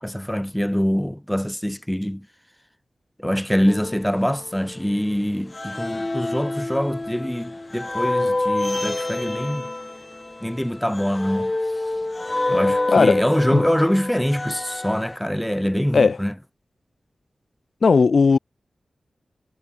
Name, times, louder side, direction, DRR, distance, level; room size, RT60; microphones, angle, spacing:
voice 1, 0.0-2.3 3.2-9.7 10.4-11.5 12.5-16.3, equal, 5° left, 3.7 m, -24 dB
sound 1, 3.6-5.1 5.5-15.2, left 2 dB, 25° left, 7.1 m, -28 dB
voice 2, 12.9-13.2 13.5-13.6 15.9-16.2 17.8-18.4, left 4 dB, 65° left, 1.6 m, -16 dB
wide cardioid pair, 110°, 0 cm